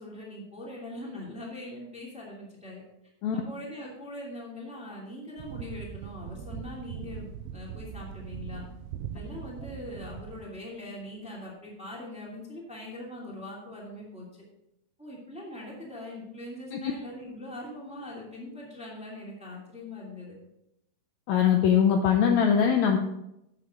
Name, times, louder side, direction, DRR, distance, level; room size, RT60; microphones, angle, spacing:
voice 1, 0.0-2.8 3.3-8.6 9.1-14.4 15.0-20.4, left 1 dB, ahead, -4 dB, 1.8 m, -41 dB
sound 1, 5.4-10.4, right 9 dB, 90° right, 2.5 m, -40 dB
voice 2, 21.3-23.0, left 8 dB, 85° left, 3 dB, 1.6 m, -22 dB
11.5 x 7.8 x 3.7 m, 0.84 s
omnidirectional pair, 4.2 m